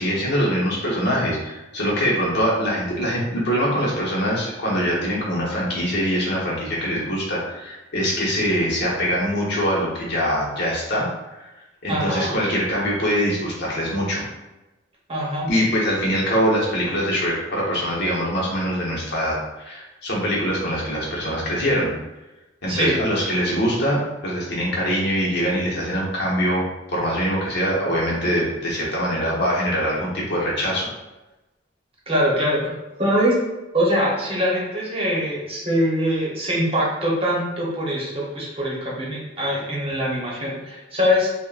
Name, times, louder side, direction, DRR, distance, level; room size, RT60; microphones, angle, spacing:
voice 1, 0.0-11.1 11.8-14.2 15.5-21.9 22.6-26.6 26.9-30.9, equal, 60° left, -4 dB, 0.9 m, -23 dB
voice 2, 11.9-12.4 15.1-15.5 22.7-23.0 32.1-33.4 33.7-41.3, equal, 30° right, -5 dB, 0.9 m, -23 dB
3.5 x 2.1 x 2.4 m, 1.0 s
head